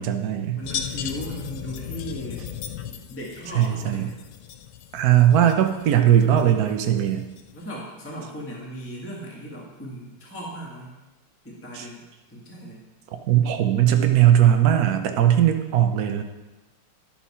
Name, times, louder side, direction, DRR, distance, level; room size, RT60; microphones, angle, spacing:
voice 1, 0.0-0.6 3.6-4.1 4.9-7.3 11.7-11.8 13.3-16.2, right 10 dB, 60° right, 6 dB, 1.0 m, -19 dB
sound 1, 0.6-7.7, left 9 dB, 80° left, 1.5 m, -37 dB
voice 2, 0.6-2.5 2.8-4.1 7.5-10.9 11.4-12.0 12.3-12.8, equal, 5° left, -3 dB, 1.4 m, -37 dB
12.0 x 5.9 x 4.2 m, 1.1 s
omnidirectional pair, 2.3 m